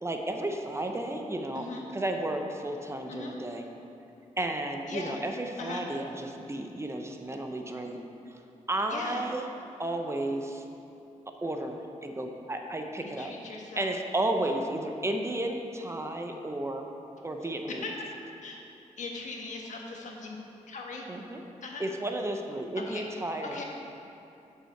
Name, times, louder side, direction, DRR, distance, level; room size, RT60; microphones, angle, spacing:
voice 1, 0.0-1.7 1.9-3.6 4.4-8.0 8.3-8.4 8.7-9.5 9.8-10.6 11.4-13.3 13.8-16.9 17.2-17.9 21.1-21.4 21.8-23.6, right 1 dB, 20° right, 3 dB, 0.7 m, -33 dB
voice 2, 3.1-3.4 4.9-5.2 5.6-5.9 8.9-9.2 13.0-13.9 17.4-17.9 18.4-18.6 19.0-20.4 20.7-21.1 21.6-21.9 22.8-23.1 23.4-23.6, left 3 dB, 70° left, 0 dB, 1.2 m, -39 dB
10.5 x 5.6 x 4.5 m, 2.7 s
cardioid pair, 95°, 13 cm